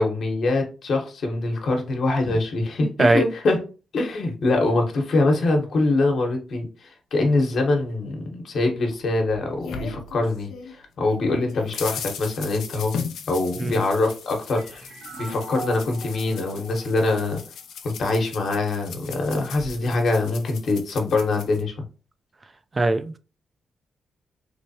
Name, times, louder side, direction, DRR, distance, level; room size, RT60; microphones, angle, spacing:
voice 1, 0.0-3.6 3.9-12.9 13.3-14.8 15.2-17.4 17.8-21.7, left 2 dB, 65° left, 1.0 m, -24 dB
voice 2, 2.8-3.2 13.6-13.8 22.7-23.1, right 2 dB, 30° right, 0.3 m, -20 dB
sound 1, 8.9-10.7 11.1-21.6, left 6 dB, 90° left, 0.5 m, -38 dB
sound 2, 14.5-18.0, right 1 dB, 70° right, 1.1 m, -40 dB
3.3 x 3.1 x 2.8 m
cardioid pair, 105°, 0 cm